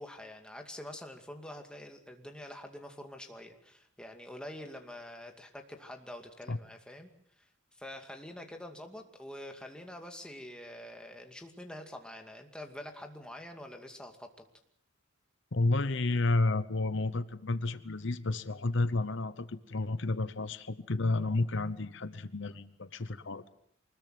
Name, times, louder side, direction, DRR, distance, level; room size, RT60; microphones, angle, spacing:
voice 1, 0.0-14.3, left 1 dB, 5° left, 4 dB, 2.4 m, -46 dB
voice 2, 15.5-23.4, left 2 dB, 60° left, 14 dB, 0.9 m, -31 dB
24.5 x 20.5 x 7.7 m, 0.68 s
head